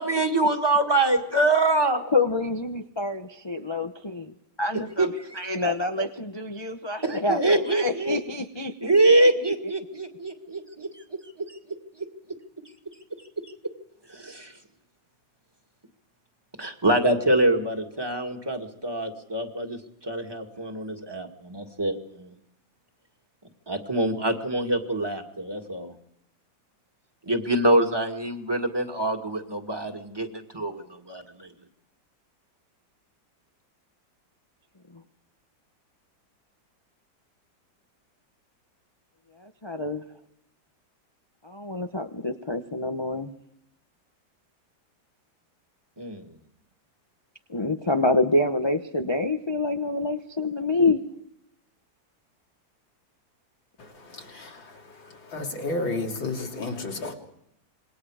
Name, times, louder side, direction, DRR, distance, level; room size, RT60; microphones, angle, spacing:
voice 1, 0.0-2.0 5.0-5.4 7.0-8.2 8.8-11.0 11.4-11.6 13.4-13.5 14.1-14.5 16.6-22.3 23.7-25.9 27.3-31.5 46.0-46.2, right 2 dB, 15° right, 2.1 m, -25 dB
voice 2, 2.1-5.1 5.3-8.9 34.9-35.0 39.4-40.0 41.4-43.3 47.5-51.0, left 2 dB, 30° left, 0.5 m, -27 dB
voice 3, 53.8-54.8 55.3-57.1, left 2 dB, 85° left, 3.8 m, -32 dB
27.0 x 22.0 x 4.9 m
omnidirectional pair, 2.1 m